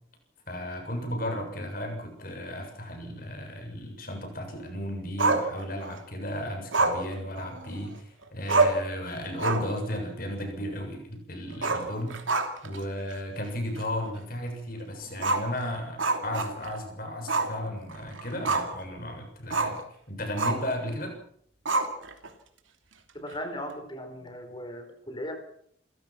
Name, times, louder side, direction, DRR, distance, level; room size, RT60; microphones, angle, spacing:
voice 1, 0.5-12.4 12.6-19.8 20.1-21.2, left 1 dB, 45° left, 4 dB, 7.1 m, -34 dB
Growling, 5.2-6.0 6.7-8.0 8.2-8.3 8.5-8.9 9.3-9.8 10.1-10.2 11.5-12.8 13.1-13.2 13.8-13.9 15.2-16.8 17.3-17.6 17.9-18.8 19.5-19.8 20.4-20.7 21.7-22.3, right 3 dB, 85° right, 3.1 m, -27 dB
voice 2, 23.1-25.4, equal, 25° left, 7 dB, 4.4 m, -37 dB
28.0 x 16.0 x 6.1 m, 0.65 s
head